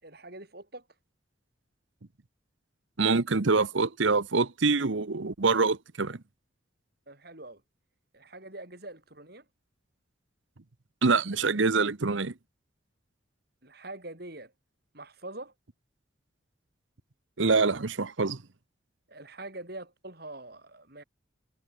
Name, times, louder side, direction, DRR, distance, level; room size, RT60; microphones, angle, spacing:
voice 1, 0.0-0.8 7.1-7.6 8.1-9.4 13.6-14.5 14.9-15.5 19.1-21.0, right 2 dB, 55° right, 6.1 m, -44 dB
voice 2, 3.0-6.2 11.0-12.3 17.4-18.4, right 4 dB, 75° right, 1.0 m, -25 dB
head